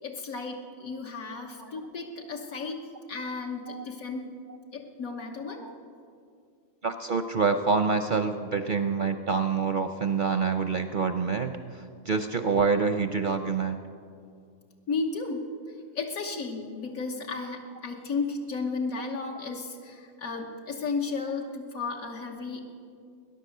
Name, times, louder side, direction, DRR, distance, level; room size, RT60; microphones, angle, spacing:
voice 1, 0.0-4.3 4.7-5.6 14.9-15.5 15.9-22.6, left 4 dB, 80° left, 0 dB, 1.7 m, -34 dB
voice 2, 6.8-13.8, right 5 dB, 55° right, 8 dB, 0.6 m, -27 dB
20.5 x 10.5 x 6.6 m, 2.3 s
omnidirectional pair, 1.5 m